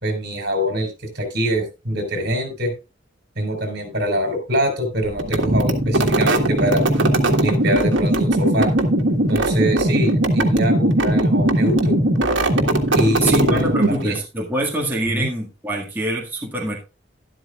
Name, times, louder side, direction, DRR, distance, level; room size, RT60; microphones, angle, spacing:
voice 1, 0.0-2.7 3.4-6.8 7.4-8.7 9.3-12.0 12.9-14.2 15.0-15.3, equal, 60° right, 4.4 m, -24 dB
sound 1, 5.2-14.2, right 1 dB, 80° right, 1.7 m, -19 dB
voice 2, 13.2-16.8, right 1 dB, 10° right, 2.0 m, -25 dB
12.5 x 11.5 x 2.4 m
head